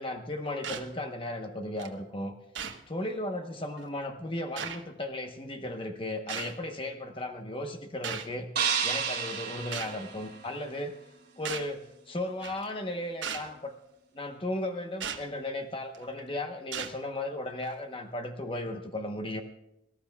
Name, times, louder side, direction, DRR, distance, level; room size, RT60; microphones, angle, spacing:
voice 1, 0.0-2.3 2.9-8.5 8.8-10.9 11.4-13.7 14.1-19.4, left 1 dB, 25° left, 4 dB, 0.9 m, -35 dB
sound 1, 0.6-0.9 1.8-1.9 2.5-2.8 3.8-3.9 4.6-4.8 6.3-6.6 8.0-8.3 9.7-10.0 11.4-11.7 12.4-12.6 13.2-13.5 15.0-15.2 15.9-16.2 16.7-17.0 17.6-17.7, right 7 dB, 75° right, 1.1 m, -36 dB
sound 2, 8.6-10.8, right 7 dB, 55° right, 3.2 m, -31 dB
23.5 x 13.0 x 2.3 m, 0.85 s
head